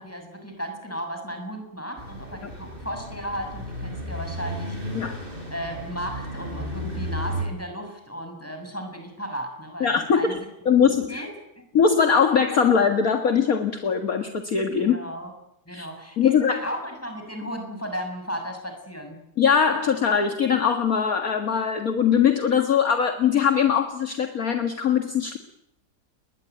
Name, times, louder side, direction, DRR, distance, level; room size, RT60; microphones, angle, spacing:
voice 1, 0.0-5.1 5.5-11.3 14.8-15.3 15.6-19.2, equal, 5° left, 4 dB, 6.7 m, -35 dB
sound 1, 2.0-7.5, equal, 25° right, 6.8 m, -33 dB
voice 2, 9.8-10.4 10.7-11.2 11.7-15.0 15.7-15.9 16.2-16.6 19.4-25.4, left 7 dB, 50° left, 6 dB, 2.2 m, -21 dB
30.0 x 21.5 x 9.3 m, 0.80 s
omnidirectional pair, 2.0 m